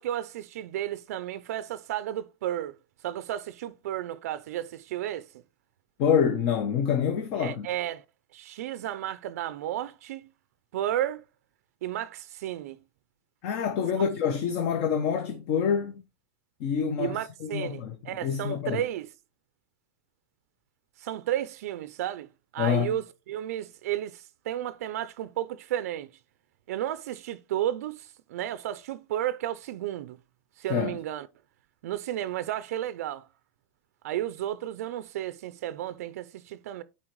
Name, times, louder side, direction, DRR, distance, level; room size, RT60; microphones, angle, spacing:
voice 1, 0.0-2.8 3.0-5.3 7.3-8.0 8.3-10.3 10.7-11.2 11.8-12.8 14.0-14.1 17.0-19.1 21.0-22.3 22.5-26.1 26.7-30.2 30.6-31.3 31.8-33.3 34.0-36.8, right 12 dB, 75° right, 0.4 m, -33 dB
voice 2, 6.0-7.7 13.4-16.0 16.6-17.2 17.5-18.0 18.2-18.8 22.6-23.0 30.7-31.0, left 7 dB, 40° left, 0.7 m, -26 dB
9.8 x 4.2 x 3.0 m
supercardioid pair, 170°, 8 cm